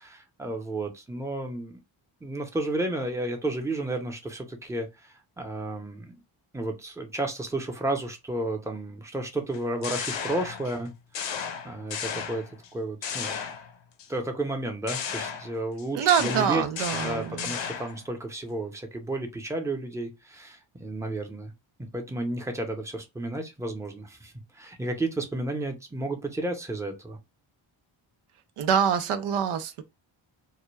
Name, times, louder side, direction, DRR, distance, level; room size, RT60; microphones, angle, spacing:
voice 1, 0.0-1.8 2.2-6.2 6.5-12.4 12.7-13.3 14.1-16.6 16.9-21.5 21.8-27.2, right 2 dB, 5° right, 0.7 m, -32 dB
sound 1, 9.5-10.8 11.1-12.7 13.0-14.1 14.9-18.0, left 7 dB, 65° left, 0.6 m, -34 dB
voice 2, 15.9-17.5 28.6-29.8, right 8 dB, 80° right, 0.5 m, -25 dB
2.2 x 2.2 x 3.1 m
cardioid pair, 70°, 50 cm